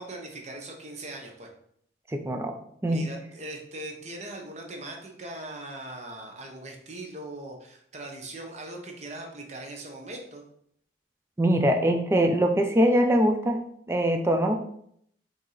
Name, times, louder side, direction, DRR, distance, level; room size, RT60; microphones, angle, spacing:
voice 1, 0.0-1.5 2.8-10.4, right 2 dB, 35° right, 1 dB, 0.8 m, -40 dB
voice 2, 2.1-2.5 2.8-3.0 11.4-14.6, equal, 15° right, 5 dB, 0.3 m, -23 dB
4.6 x 2.7 x 3.9 m, 0.69 s
head